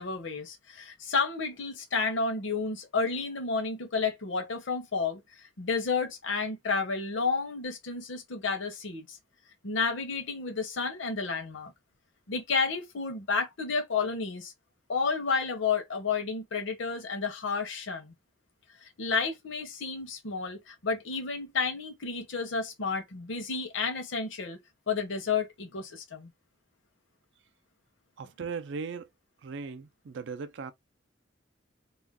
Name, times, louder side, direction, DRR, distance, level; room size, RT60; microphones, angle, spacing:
voice 1, 0.0-5.2 5.6-9.2 9.6-11.7 12.3-14.5 14.9-18.1 19.0-24.6 24.9-26.3, left 4 dB, 70° left, 0.7 m, -31 dB
voice 2, 28.2-29.1 29.4-30.7, right 5 dB, 65° right, 0.4 m, -38 dB
2.4 x 2.2 x 3.5 m
head